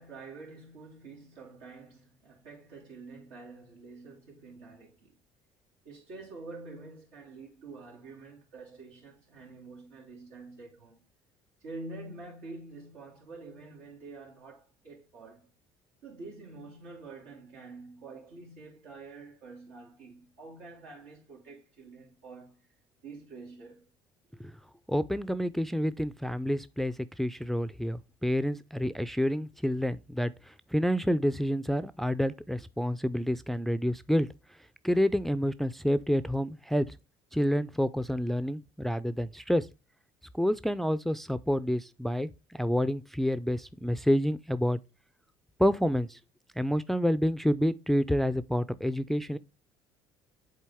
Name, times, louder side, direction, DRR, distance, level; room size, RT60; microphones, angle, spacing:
voice 1, 0.0-5.1 5.8-11.0 11.6-15.5 16.0-22.7 23.0-23.9, right 3 dB, 85° right, 2.8 m, -47 dB
voice 2, 24.9-30.3 30.7-34.3 34.8-36.9 37.3-39.7 40.4-42.3 42.6-44.8 45.6-46.2 46.6-49.4, equal, ahead, 0.4 m, -28 dB
7.4 x 4.0 x 3.5 m
supercardioid pair, 85°, 12 cm